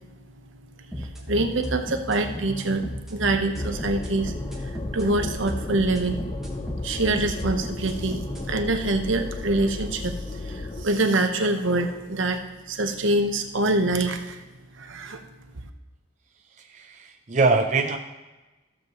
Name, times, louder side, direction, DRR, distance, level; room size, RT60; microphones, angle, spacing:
sound 1, 0.9-8.5, equal, ahead, 1.4 m, -34 dB
voice 1, 1.0-6.2 6.8-12.4 12.7-14.4 14.8-15.2, right 2 dB, 75° right, 5 dB, 1.0 m, -25 dB
sound 2, 3.6-10.8, left 2 dB, 25° left, 0.4 m, -35 dB
voice 2, 16.6-18.0, right 3 dB, 35° right, 3 dB, 0.5 m, -23 dB
15.0 x 7.3 x 3.0 m, 1.1 s
head